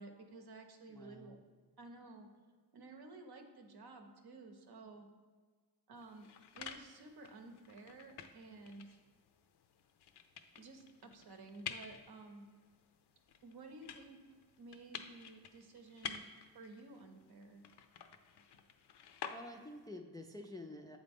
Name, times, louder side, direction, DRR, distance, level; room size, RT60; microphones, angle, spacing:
voice 1, 0.0-1.4 1.8-2.3 2.7-5.1 5.9-6.3 6.5-8.9 10.6-12.5 13.4-14.2 14.6-16.2 16.5-17.6, right 3 dB, 65° right, 4 dB, 0.8 m, -53 dB
voice 2, 0.9-1.4 19.3-21.0, left 1 dB, 10° left, 3 dB, 0.3 m, -49 dB
sound 1, 6.0-19.9, left 7 dB, 75° left, 0.5 m, -51 dB
7.2 x 3.9 x 3.5 m, 1.5 s
cardioid pair, 70°, 41 cm